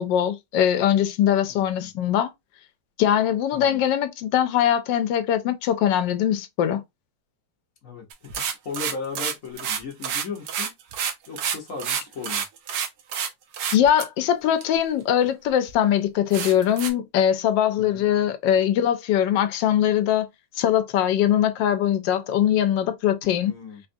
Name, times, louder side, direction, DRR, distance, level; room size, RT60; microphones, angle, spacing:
voice 1, 0.0-2.3 3.0-6.8 13.7-20.3 20.6-23.5, left 10 dB, 85° left, 1.3 m, -21 dB
voice 2, 1.5-1.9 3.5-3.8 7.8-10.7 11.3-12.4 17.8-18.0 23.4-23.8, left 5 dB, 50° left, 1.2 m, -37 dB
sound 1, 8.1-13.3 13.5-14.0 14.6-14.7 15.3-15.4 15.7-15.8 16.3-16.9, right 8 dB, 70° right, 1.2 m, -28 dB
4.4 x 2.4 x 2.6 m
omnidirectional pair, 1.9 m